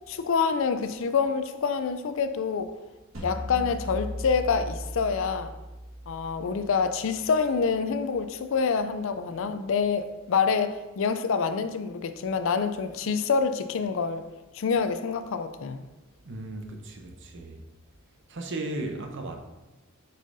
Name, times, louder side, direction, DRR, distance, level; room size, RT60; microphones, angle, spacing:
voice 1, 0.1-2.7 3.2-5.5 6.1-14.3 14.5-15.8, left 5 dB, 65° left, 0.4 m, -27 dB
sound 1, 3.1-8.2, equal, 80° right, 1.6 m, -39 dB
voice 2, 16.3-17.6 18.3-19.4, right 2 dB, 60° right, 0.8 m, -35 dB
6.4 x 5.5 x 2.6 m
head